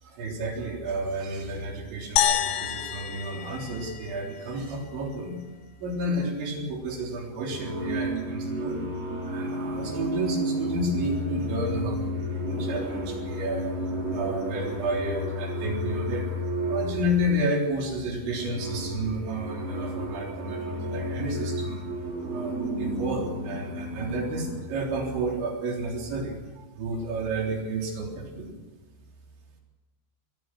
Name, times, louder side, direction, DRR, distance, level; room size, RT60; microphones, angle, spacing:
voice 1, 0.0-5.4 5.8-8.9 9.2-13.7 14.1-16.3 16.7-21.9 22.3-28.6, right 1 dB, 70° right, 0 dB, 6.0 m, -31 dB
sound 1, 2.2-4.6, left 10 dB, 70° left, 3.2 m, -28 dB
sound 2, 6.7-7.1 7.5-17.5 18.0-24.6, equal, 45° right, 7.3 m, -32 dB
25.0 x 20.5 x 6.2 m, 1.2 s
omnidirectional pair, 5.4 m